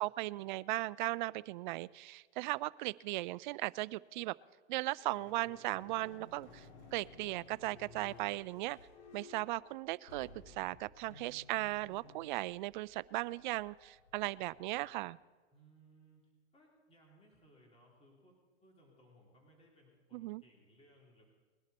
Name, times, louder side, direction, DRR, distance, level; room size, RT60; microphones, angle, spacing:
voice 1, 0.0-4.3 4.7-6.7 6.9-8.8 9.1-15.2 20.1-20.4, right 19 dB, 45° right, 20 dB, 0.4 m, -37 dB
sound 1, 5.0-15.1, left 3 dB, 75° left, 3.3 m, -58 dB
voice 2, 15.5-16.2 16.5-21.2, right 1 dB, 15° left, -2 dB, 3.5 m, -64 dB
21.0 x 11.0 x 4.3 m, 1.4 s
hypercardioid pair, 125°, 34 cm